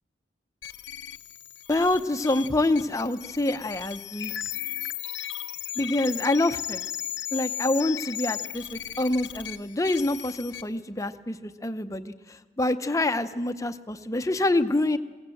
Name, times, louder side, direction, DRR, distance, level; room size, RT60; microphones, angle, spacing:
sound 1, 0.6-10.6, left 10 dB, 80° left, 0.8 m, -36 dB
voice 1, 1.7-4.3 5.8-6.8 7.3-15.0, left 2 dB, 15° left, 10 dB, 0.6 m, -26 dB
21.5 x 16.5 x 7.7 m, 1.3 s
head